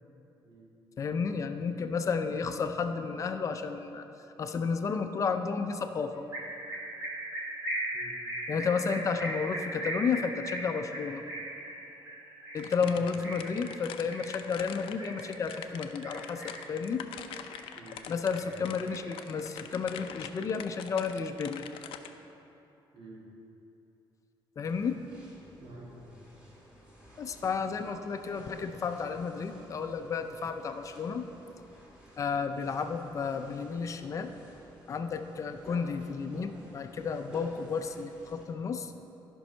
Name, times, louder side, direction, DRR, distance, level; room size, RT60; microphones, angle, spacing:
voice 1, 1.0-4.0 4.4-6.3 8.5-11.2 12.5-17.1 18.1-21.7 24.6-25.0 27.2-31.2 32.2-34.3 34.9-38.9, left 5 dB, 35° left, 7 dB, 0.5 m, -32 dB
sound 1, 6.3-15.7 16.0-16.7 17.1-18.0 18.3-19.7, right 1 dB, 30° right, 2.2 m, -38 dB
voice 2, 7.9-8.2 12.9-13.2 17.7-18.1 18.3-18.6 22.9-23.3 25.6-26.2, right 2 dB, 70° right, -4 dB, 2.5 m, -50 dB
sound 2, 12.6-22.1, left 9 dB, 85° left, 0.5 m, -44 dB
sound 3, 24.7-38.5, equal, 10° right, 2.0 m, -53 dB
13.5 x 5.4 x 5.6 m, 3.0 s
cardioid pair, 155°, 9 cm